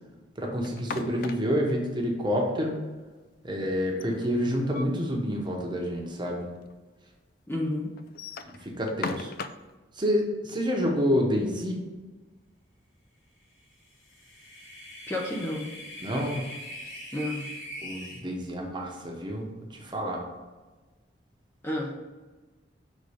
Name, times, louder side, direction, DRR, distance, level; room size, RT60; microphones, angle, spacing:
voice 1, 0.4-2.7 3.4-6.5 8.4-9.3 10.0-11.8 16.0-16.4 17.8-19.4 19.7-20.2, equal, 25° right, 0 dB, 1.0 m, -28 dB
sound 1, 0.6-1.7 3.8-5.1 5.5-5.6 5.9-6.0 6.7-6.8 8.0-9.7, left 4 dB, 50° left, 0.3 m, -38 dB
voice 2, 7.5-7.9 15.1-15.7 17.1-17.5 21.6-21.9, left 1 dB, 10° left, -2 dB, 0.6 m, -30 dB
sound 2, 13.9-18.2, equal, 75° left, 1.8 m, -42 dB
5.4 x 3.7 x 5.0 m, 1.3 s
head